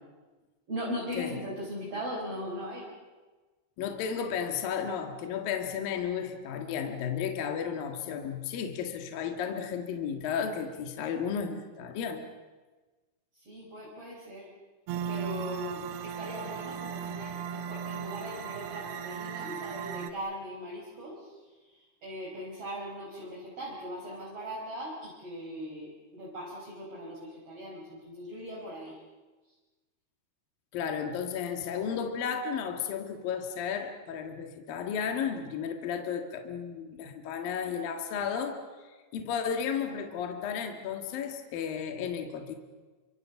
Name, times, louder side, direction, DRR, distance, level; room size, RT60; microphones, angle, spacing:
voice 1, 0.7-2.9 13.3-14.5 15.1-21.4 21.7-29.0, equal, 35° right, -4 dB, 5.8 m, -39 dB
voice 2, 3.8-12.3 30.7-42.5, left 7 dB, 60° left, 4 dB, 3.2 m, -33 dB
sound 1, 14.9-20.1, right 7 dB, 70° right, 3.0 m, -37 dB
28.0 x 26.0 x 7.2 m, 1.3 s
omnidirectional pair, 5.1 m